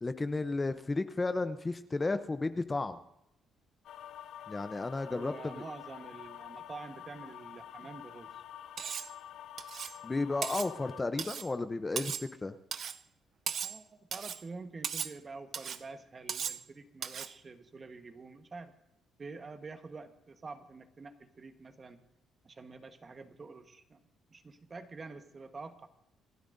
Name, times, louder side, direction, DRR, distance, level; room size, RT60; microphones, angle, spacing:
voice 1, 0.0-3.0 4.5-5.6 10.0-12.1 12.4-12.5, left 3 dB, 20° left, 10 dB, 0.7 m, -33 dB
sound 1, 3.8-11.0, left 10 dB, 70° left, 0.5 m, -48 dB
voice 2, 5.1-8.3 13.6-18.7 19.2-22.0 22.4-24.0 24.3-25.9, right 4 dB, 30° right, 8 dB, 1.3 m, -47 dB
Cutlery silverware, 8.8-9.1 9.6-10.0 10.4-10.7 11.2-11.5 12.0-12.3 12.7-13.0 13.5-13.8 14.1-14.4 14.8-15.1 15.5-15.8 16.3-16.6 17.0-17.3, right 7 dB, 50° right, 0.5 m, -37 dB
27.5 x 12.0 x 2.6 m, 0.85 s
cardioid pair, 105°, 0 cm